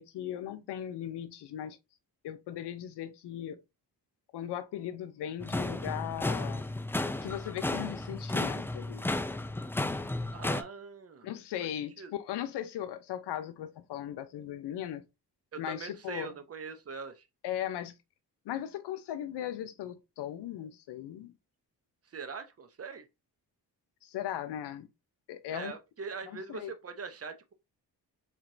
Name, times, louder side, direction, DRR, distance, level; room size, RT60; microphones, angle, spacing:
voice 1, 0.0-1.8 2.2-3.6 4.3-6.6 7.2-9.1 11.2-15.0 15.6-16.3 17.4-18.0 18.4-21.3 24.0-24.9 25.3-25.7 26.3-26.7, left 11 dB, 80° left, 0.7 m, -38 dB
sound 1, 5.4-10.6, left 2 dB, 5° left, 0.3 m, -33 dB
voice 2, 10.3-11.3 11.6-11.7 12.0-12.1 15.5-17.3 22.1-23.1 25.5-27.5, right 5 dB, 35° right, 0.8 m, -42 dB
4.0 x 2.9 x 2.6 m
cardioid pair, 70°, 40 cm